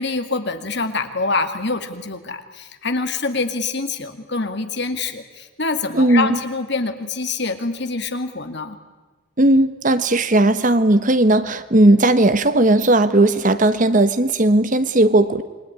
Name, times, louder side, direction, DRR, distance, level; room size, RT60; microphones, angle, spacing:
voice 1, 0.0-8.8, left 3 dB, 55° left, 8 dB, 2.1 m, -25 dB
voice 2, 5.9-6.4 9.4-15.4, right 1 dB, 40° right, 12 dB, 1.1 m, -16 dB
27.5 x 22.0 x 9.7 m, 1.3 s
head